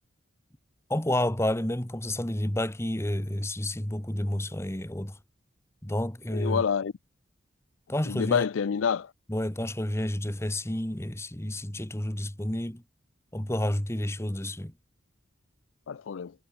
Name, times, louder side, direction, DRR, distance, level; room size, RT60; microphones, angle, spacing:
voice 1, 0.9-5.2 5.8-6.6 7.9-8.4 9.3-12.8 13.3-14.7, left 1 dB, 15° left, 1.3 m, -30 dB
voice 2, 6.3-6.9 8.1-9.1 15.9-16.3, left 6 dB, 85° left, 0.4 m, -27 dB
head